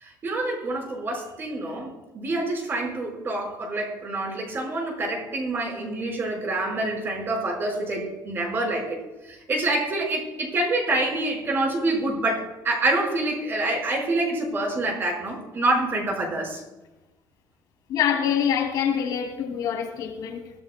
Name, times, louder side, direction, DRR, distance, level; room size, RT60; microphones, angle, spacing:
voice 1, 0.0-9.0 9.3-16.6, right 2 dB, 30° right, 5.0 m, -27 dB
voice 2, 17.9-20.5, left 8 dB, 60° left, 2.8 m, -25 dB
23.5 x 15.5 x 2.3 m
cardioid pair, 175°, 8 cm